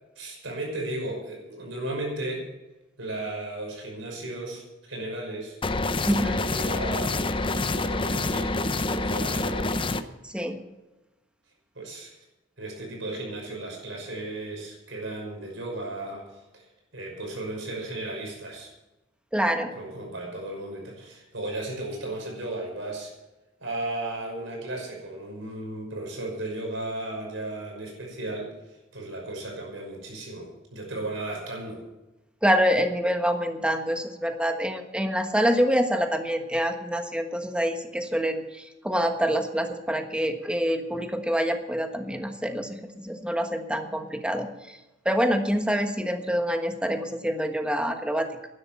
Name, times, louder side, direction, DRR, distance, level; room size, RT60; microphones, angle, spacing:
voice 1, 0.2-2.5 3.0-5.6 6.0-9.8 11.7-12.1 12.6-16.3 16.5-16.6 16.9-18.7 19.8-23.1 23.6-28.5 28.9-31.8, right 2 dB, 75° right, 0 dB, 5.8 m, -35 dB
sound 1, 5.6-10.0, left 2 dB, 25° left, 0.7 m, -27 dB
voice 2, 19.3-19.7 32.4-44.8 45.0-48.5, equal, 5° right, 6 dB, 1.3 m, -26 dB
12.0 x 11.0 x 7.1 m, 1.0 s
head